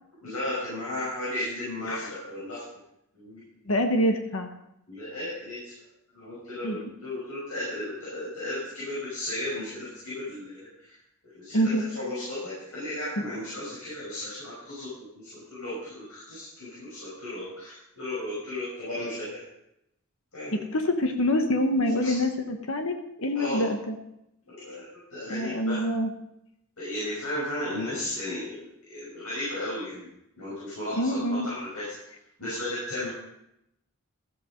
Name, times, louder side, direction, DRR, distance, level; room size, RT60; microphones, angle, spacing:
voice 1, 0.2-2.6 3.1-3.4 4.9-5.7 6.1-10.9 11.2-19.4 20.3-20.6 22.0-22.2 23.3-23.7 24.5-25.8 26.8-30.1 30.4-31.8 32.4-33.1, left 1 dB, 85° left, -8 dB, 5.9 m, -35 dB
voice 2, 3.7-4.5 6.6-6.8 11.5-11.8 20.5-23.9 25.3-26.1 31.0-31.5, left 1 dB, 70° left, 5 dB, 1.2 m, -26 dB
14.0 x 8.0 x 5.2 m, 0.81 s
head